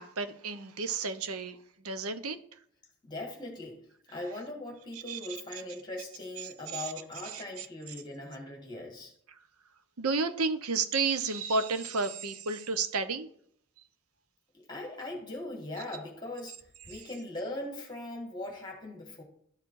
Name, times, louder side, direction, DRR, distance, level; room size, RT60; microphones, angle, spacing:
voice 1, 0.0-1.6 1.8-2.4 5.1-5.2 6.7-6.9 7.3-7.7 10.0-13.3, right 4 dB, 85° right, 10 dB, 0.9 m, -31 dB
voice 2, 3.0-3.8 4.1-9.1 14.5-19.2, left 1 dB, 20° left, 0 dB, 1.7 m, -40 dB
13.0 x 4.7 x 2.6 m, 0.64 s
head